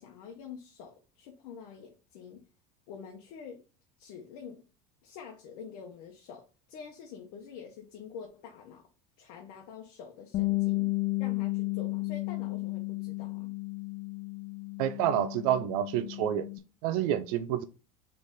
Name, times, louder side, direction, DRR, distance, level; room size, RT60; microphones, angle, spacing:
voice 1, 0.0-2.4 2.9-3.6 4.0-4.6 5.0-8.8 9.2-10.9 11.2-13.5, left 7 dB, 75° left, 0.9 m, -47 dB
Bass guitar, 10.3-16.6, left 23 dB, 45° left, 0.4 m, -33 dB
voice 2, 14.8-16.5 16.8-17.6, right 11 dB, 80° right, 0.4 m, -28 dB
3.9 x 3.4 x 3.6 m
supercardioid pair, 100°, 18 cm